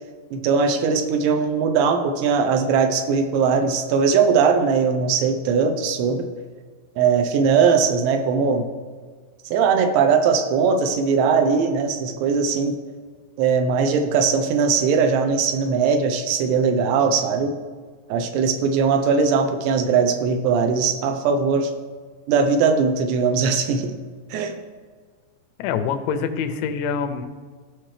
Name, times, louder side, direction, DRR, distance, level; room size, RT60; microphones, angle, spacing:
voice 1, 0.3-6.3 7.0-8.7 9.5-12.7 13.4-17.6 18.1-21.7 22.3-24.0 24.3-24.5, right 5 dB, 85° right, 6 dB, 3.0 m, -20 dB
voice 2, 25.6-27.3, left 6 dB, 90° left, 9 dB, 3.0 m, -25 dB
15.5 x 6.1 x 3.3 m, 1.5 s
omnidirectional pair, 5.0 m